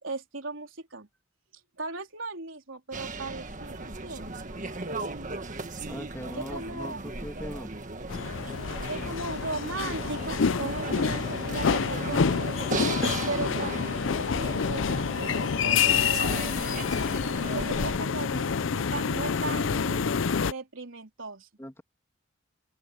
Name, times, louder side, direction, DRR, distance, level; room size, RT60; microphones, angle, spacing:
voice 1, 0.0-1.1 1.8-4.4 6.3-7.0 8.9-12.8 13.3-16.5 17.5-20.1 20.4-21.5, right 3 dB, 85° right, 3.8 m, -37 dB
sound 1, 2.9-18.0, right 2 dB, 40° right, 1.6 m, -37 dB
voice 2, 5.8-7.7 21.6-21.8, equal, 15° left, 2.7 m, -40 dB
sound 2, 8.1-20.5, left 6 dB, 80° left, 0.5 m, -28 dB
open air
head